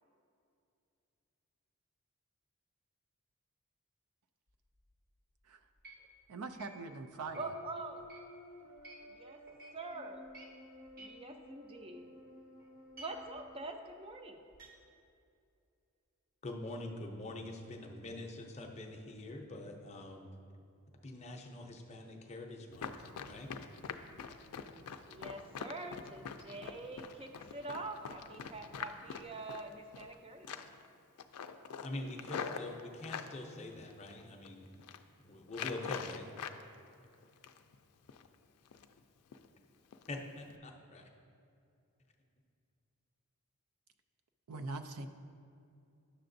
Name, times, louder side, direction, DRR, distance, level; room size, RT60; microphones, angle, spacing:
sound 1, 4.5-5.2 5.6-9.2 9.5-9.8 10.2-12.3 12.6-14.7, right 2 dB, 40° right, 0.8 m, -56 dB
voice 1, 6.3-7.5 44.5-45.1, right 3 dB, 85° right, 9 dB, 0.4 m, -42 dB
sound 2, 7.1-13.6, equal, 70° right, 1.6 m, -54 dB
voice 2, 7.4-8.1 9.1-9.4 9.7-10.2 11.0-12.1 13.0-14.4 25.1-30.7, right 2 dB, 25° right, 6 dB, 0.4 m, -45 dB
voice 3, 16.4-20.3 21.0-22.9 23.2-23.5 31.8-34.7 35.2-36.3 40.1-41.0, left 2 dB, 30° left, 2 dB, 0.5 m, -44 dB
Run, 22.7-30.1 30.4-30.9 31.2-33.3 33.9-34.5 34.7-35.0 35.5-36.6 36.9-37.7 38.1-38.3 38.7-39.0 39.3-39.5 39.9-40.1 40.4-40.6, left 6 dB, 85° left, 0.4 m, -44 dB
9.9 x 6.7 x 2.6 m, 2.5 s
head